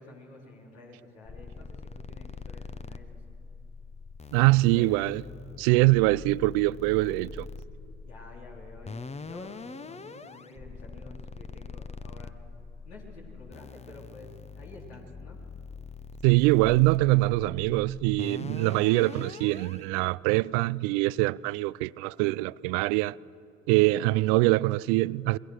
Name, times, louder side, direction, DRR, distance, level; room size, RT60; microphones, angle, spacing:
voice 1, 0.0-3.4 4.3-5.0 8.0-12.4 12.8-15.4, left 2 dB, 85° left, 3.8 m, -49 dB
sound 1, 1.3-19.8, left 4 dB, 20° left, 0.8 m, -43 dB
voice 2, 4.3-5.2 5.6-7.5 16.2-23.2 23.7-25.4, right 20 dB, 70° right, 0.5 m, -23 dB
28.0 x 20.5 x 6.4 m
hypercardioid pair, 60°, 33 cm